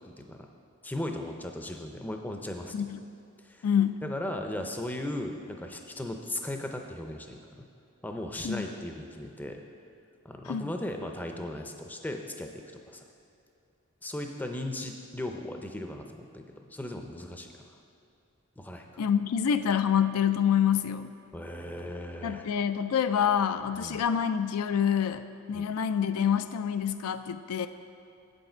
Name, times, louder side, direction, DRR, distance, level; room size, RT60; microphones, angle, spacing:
voice 1, 0.0-0.5 0.8-2.9 3.4-3.7 4.0-7.6 8.0-9.6 10.2-13.1 14.0-17.5 18.6-19.0 21.3-22.5 23.7-24.0 25.5-25.7, left 1 dB, 10° left, 3 dB, 0.5 m, -37 dB
voice 2, 3.6-4.0 8.4-8.6 10.5-10.7 19.0-21.1 22.2-27.7, left 8 dB, 80° left, 10 dB, 0.4 m, -27 dB
8.0 x 8.0 x 4.4 m, 2.6 s
head